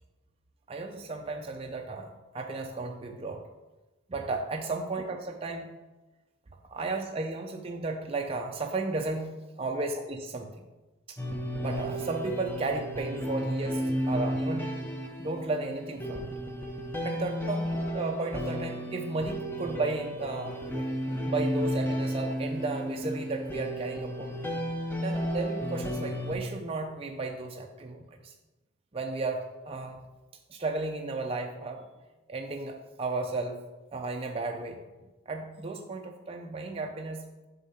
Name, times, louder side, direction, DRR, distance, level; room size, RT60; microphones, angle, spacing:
voice 1, 0.7-3.4 4.1-5.7 6.7-10.6 11.1-11.2 11.6-14.8 15.2-16.3 17.0-20.8 21.2-24.3 25.0-28.3 28.9-30.0 30.5-31.8 32.3-33.6 33.9-34.8 35.3-37.5, right 3 dB, 30° right, 2 dB, 0.5 m, -34 dB
sound 1, 11.2-26.3, equal, 10° left, 0.7 m, -33 dB
7.3 x 3.7 x 5.6 m, 1.1 s
head